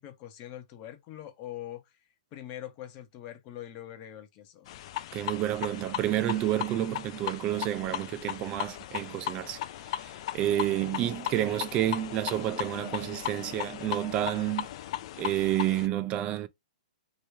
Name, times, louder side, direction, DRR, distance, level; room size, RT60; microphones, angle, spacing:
voice 1, 0.0-1.8 2.3-4.7, left 12 dB, 35° left, 1.0 m, -43 dB
sound 1, 4.7-15.9, left 13 dB, 50° left, 0.4 m, -37 dB
voice 2, 5.1-9.6 10.0-14.7 15.2-16.5, right 13 dB, 30° right, 0.4 m, -29 dB
3.1 x 3.0 x 3.3 m
hypercardioid pair, 140°, 4 cm